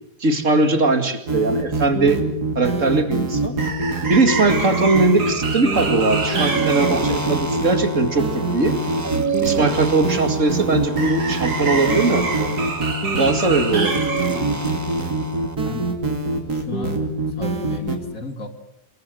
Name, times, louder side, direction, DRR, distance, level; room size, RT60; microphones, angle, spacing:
voice 1, 0.2-2.2 2.6-3.6 4.1-8.8 9.4-12.6 13.2-14.6, right 3 dB, 50° right, 8 dB, 2.6 m, -20 dB
sound 1, 1.3-18.0, right 3 dB, 70° right, 3.2 m, -23 dB
sound 2, 5.7-15.5, right 4 dB, 10° right, 1.0 m, -29 dB
voice 2, 15.2-15.9 16.5-17.0 17.4-18.5, left 4 dB, 55° left, 7 dB, 2.3 m, -34 dB
26.5 x 22.0 x 7.8 m, 0.80 s
omnidirectional pair, 1.8 m